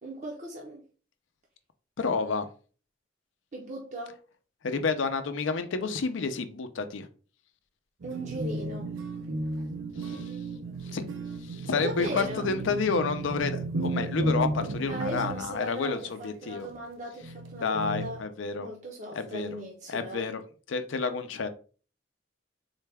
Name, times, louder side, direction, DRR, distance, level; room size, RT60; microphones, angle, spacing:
voice 1, 0.0-0.8 3.5-4.2 8.0-8.9 11.7-12.4 14.9-18.2 18.6-20.3, right 1 dB, 40° right, 0.6 m, -38 dB
voice 2, 2.0-2.5 4.6-7.1 10.0-10.3 10.9-11.0 11.4-16.7 17.6-18.7 19.2-19.5 19.9-20.4 20.7-21.5, left 4 dB, 75° left, 0.5 m, -30 dB
sound 1, 8.0-15.6 16.6-16.8 17.2-18.2, right 2 dB, 85° right, 0.5 m, -33 dB
3.9 x 2.2 x 3.3 m
head